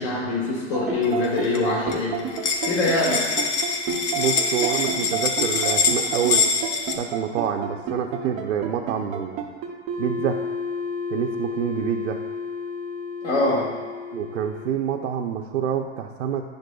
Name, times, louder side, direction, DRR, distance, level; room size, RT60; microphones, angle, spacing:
voice 1, 0.0-2.2 2.6-3.2 13.2-13.7, left 2 dB, 65° left, -5 dB, 1.8 m, -23 dB
sound 1, 0.7-14.7, right 2 dB, 20° right, 0.3 m, -30 dB
sound 2, 1.0-1.6 1.9-2.0 2.2-6.9, left 5 dB, 50° left, 0.9 m, -24 dB
voice 2, 4.1-6.4 7.0-9.4 10.0-10.4 11.1-12.2 14.1-16.4, right 9 dB, 90° right, 2 dB, 0.6 m, -27 dB
10.0 x 6.6 x 2.3 m, 1.5 s
supercardioid pair, 150°, 37 cm